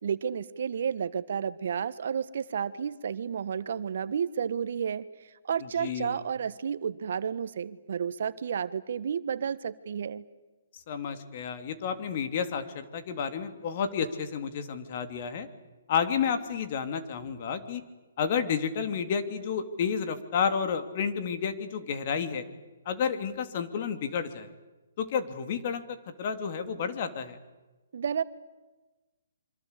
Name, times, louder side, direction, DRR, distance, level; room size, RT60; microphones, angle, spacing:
voice 1, 0.0-10.2 27.9-28.2, right 7 dB, 60° right, 14 dB, 1.3 m, -31 dB
voice 2, 5.8-6.2 10.9-15.5 15.9-17.8 18.2-22.4 22.8-24.5 25.0-25.8 26.2-27.4, left 6 dB, 45° left, 9 dB, 3.1 m, -31 dB
26.5 x 25.0 x 8.4 m, 1.1 s
hypercardioid pair, 150°, 0 cm